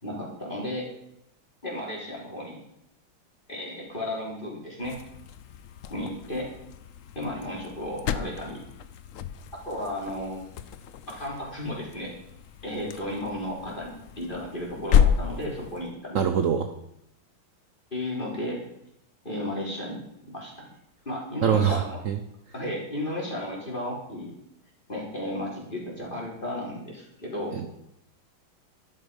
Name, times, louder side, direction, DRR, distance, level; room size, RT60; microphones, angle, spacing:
voice 1, 0.0-0.9 1.6-2.6 3.5-5.0 5.9-6.5 7.2-8.6 9.7-10.5 11.1-12.1 12.6-16.2 17.9-18.6 19.2-20.0 20.3-20.7 21.1-22.0 22.5-24.3 24.9-27.6, left 1 dB, 20° left, -4 dB, 4.3 m, -34 dB
sound 1, 4.8-15.9, left 8 dB, 90° left, 0.7 m, -31 dB
voice 2, 16.1-16.7 21.4-22.2 27.5-27.7, right 7 dB, 60° right, 8 dB, 0.8 m, -24 dB
12.5 x 12.0 x 5.3 m, 0.79 s
omnidirectional pair, 2.3 m